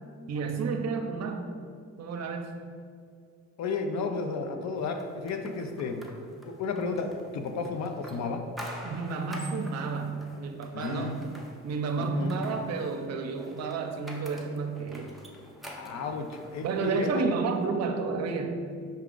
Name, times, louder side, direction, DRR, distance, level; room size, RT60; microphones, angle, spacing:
voice 1, 0.3-1.5 2.0-2.6 8.8-11.1 11.6-15.1 16.0-16.1 16.6-18.8, right 4 dB, 60° right, 4 dB, 0.6 m, -31 dB
voice 2, 3.6-6.0 6.4-8.4 10.7-11.2 12.0-12.4 15.8-17.2, left 4 dB, 65° left, 5 dB, 0.5 m, -33 dB
sound 1, 4.9-17.2, equal, ahead, 0.5 m, -47 dB
5.5 x 2.4 x 3.7 m, 2.2 s
cardioid pair, 90°, 30 cm